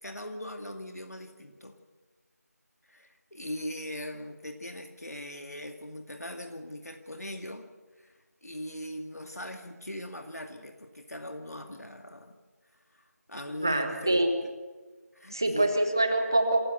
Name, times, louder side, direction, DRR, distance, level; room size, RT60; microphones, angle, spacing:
voice 1, 0.0-1.8 2.8-7.7 8.0-8.1 8.4-12.4 12.9-14.5 15.1-15.7, left 1 dB, 70° left, 5 dB, 2.2 m, -40 dB
voice 2, 13.6-14.3 15.3-16.7, right 1 dB, 15° right, 7 dB, 0.8 m, -25 dB
27.0 x 14.5 x 6.8 m, 1.4 s
figure-of-eight pair, 175°, 9 cm